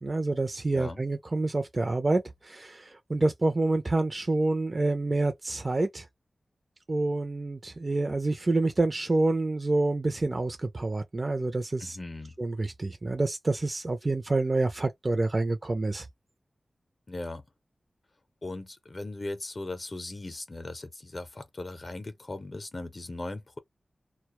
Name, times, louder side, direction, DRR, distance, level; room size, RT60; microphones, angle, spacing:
voice 1, 0.0-6.0 6.9-12.0 12.4-16.1, right 2 dB, 40° right, 0.5 m, -27 dB
voice 2, 11.8-12.4 17.1-17.4 18.4-23.6, left 2 dB, 45° left, 0.6 m, -38 dB
2.2 x 2.0 x 2.9 m
cardioid pair, 55°, 0 cm